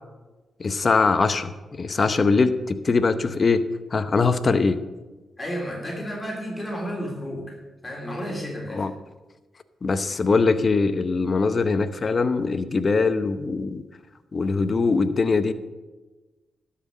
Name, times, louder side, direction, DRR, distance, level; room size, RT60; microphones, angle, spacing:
voice 1, 0.6-1.5 1.8-3.6 3.9-4.8 8.7-8.9 9.8-13.8 14.3-15.5, left 4 dB, 45° left, 12 dB, 0.8 m, -22 dB
voice 2, 5.4-7.4 7.8-8.8, equal, 25° left, -2 dB, 3.3 m, -32 dB
12.0 x 5.8 x 7.3 m, 1.2 s
supercardioid pair, 55°, 0 cm